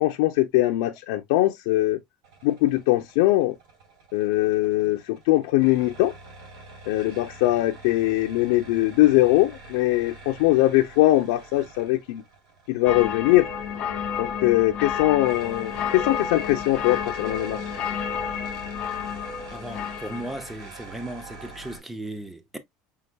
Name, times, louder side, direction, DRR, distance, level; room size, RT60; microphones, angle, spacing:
voice 1, 0.0-2.0 2.4-3.5 4.1-6.1 6.9-12.2 12.7-13.5 14.2-17.6, left 17 dB, 85° left, 0.5 m, -21 dB
sound 1, 2.2-21.8, right 2 dB, 90° right, 3.2 m, -46 dB
sound 2, 12.8-20.5, left 7 dB, 35° left, 1.0 m, -31 dB
voice 2, 19.5-22.6, right 1 dB, 5° right, 0.6 m, -36 dB
5.7 x 3.5 x 2.2 m
cardioid pair, 165°, 3 cm